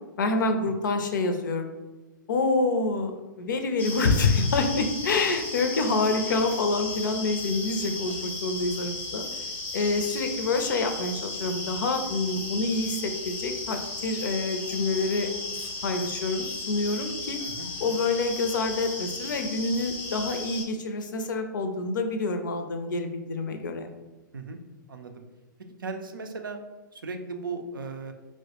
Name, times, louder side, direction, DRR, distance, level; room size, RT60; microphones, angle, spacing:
voice 1, 0.2-1.7 2.3-9.2 9.7-17.4 17.8-23.9, left 3 dB, 65° left, 6 dB, 0.5 m, -27 dB
sound 1, 3.8-20.6, left 3 dB, 15° left, 0.5 m, -35 dB
voice 2, 24.9-25.2 25.8-26.6 26.9-28.1, right 4 dB, 80° right, 5 dB, 0.4 m, -36 dB
4.4 x 2.1 x 2.8 m, 1.2 s
figure-of-eight pair, 110°, 11 cm